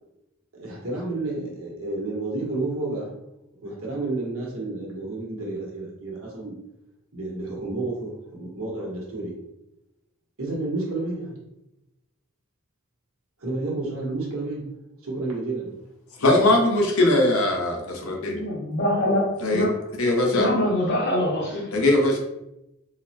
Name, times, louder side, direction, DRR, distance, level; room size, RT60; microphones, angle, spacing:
voice 1, 0.5-3.1 3.6-6.5 7.1-9.3 10.4-11.4 13.4-14.6 15.0-15.7, right 2 dB, 85° right, 1.2 m, -30 dB
voice 2, 16.2-18.4 19.4-19.6 20.0-20.5 21.7-22.2, left 1 dB, 90° left, 0.7 m, -20 dB
voice 3, 18.2-19.7 20.3-21.6, left 1 dB, 55° left, 0.9 m, -24 dB
3.9 x 2.1 x 2.8 m
head